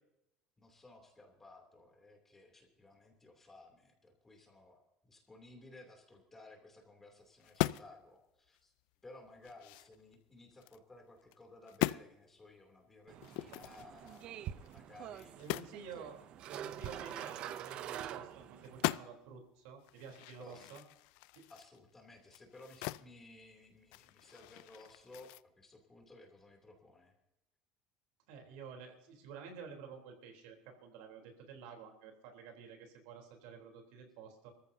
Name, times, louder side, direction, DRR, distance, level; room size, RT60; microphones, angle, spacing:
voice 1, 0.6-8.7 9.0-15.7 20.4-20.7 21.5-27.1, left 2 dB, 15° left, 2 dB, 2.8 m, -57 dB
sound 1, 7.4-8.0 8.5-8.6 9.1-10.8 11.2-11.4 11.7-12.1 13.2-15.8 16.1-16.2 16.5-18.3 18.6-19.3 19.8-23.1 23.4-25.4, left 19 dB, 75° left, 0.4 m, -40 dB
sound 2, 13.1-18.9, right 11 dB, 45° right, 0.6 m, -46 dB
voice 2, 15.4-20.8 21.3-21.4 28.3-34.5, right 6 dB, 85° right, 3 dB, 3.4 m, -51 dB
25.0 x 14.5 x 2.7 m, 0.87 s
cardioid pair, 165°, 2 cm